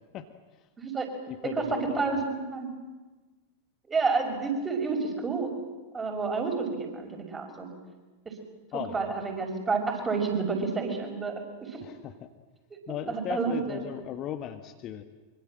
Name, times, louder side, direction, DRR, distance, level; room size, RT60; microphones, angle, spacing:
voice 1, 0.8-1.1 1.5-2.7 3.9-5.5 5.9-7.7 8.2-8.3 8.9-11.3 11.6-11.8 13.1-13.8, right 4 dB, 15° right, 3 dB, 6.3 m, -29 dB
voice 2, 1.3-2.2 8.7-9.1 11.8-12.3 12.9-15.0, left 10 dB, 35° left, 7 dB, 1.4 m, -37 dB
25.0 x 24.5 x 7.7 m, 1.2 s
figure-of-eight pair, 90°, 0 cm